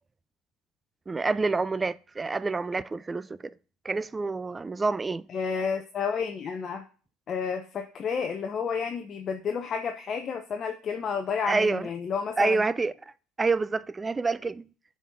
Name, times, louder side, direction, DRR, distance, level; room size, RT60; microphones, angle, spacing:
voice 1, 1.1-3.5 3.8-5.3 11.5-11.9 12.4-12.9 13.4-14.6, right 3 dB, 20° right, 0.3 m, -27 dB
voice 2, 5.3-6.8 7.3-12.6, left 6 dB, 40° left, 0.7 m, -31 dB
7.1 x 4.3 x 3.6 m
supercardioid pair, 100°, 0 cm